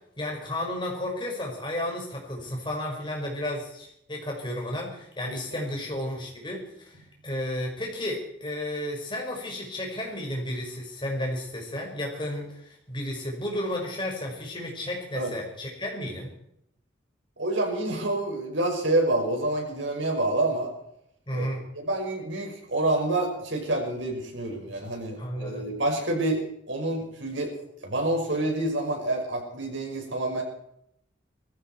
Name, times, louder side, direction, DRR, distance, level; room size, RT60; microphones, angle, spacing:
voice 1, 0.2-16.3 21.3-21.6 25.2-25.6, left 1 dB, 25° left, 0 dB, 5.4 m, -33 dB
voice 2, 17.4-20.7 21.3-21.5 21.7-27.5 27.8-30.4, right 2 dB, 85° right, 1 dB, 6.1 m, -28 dB
20.0 x 15.0 x 4.7 m, 0.74 s
head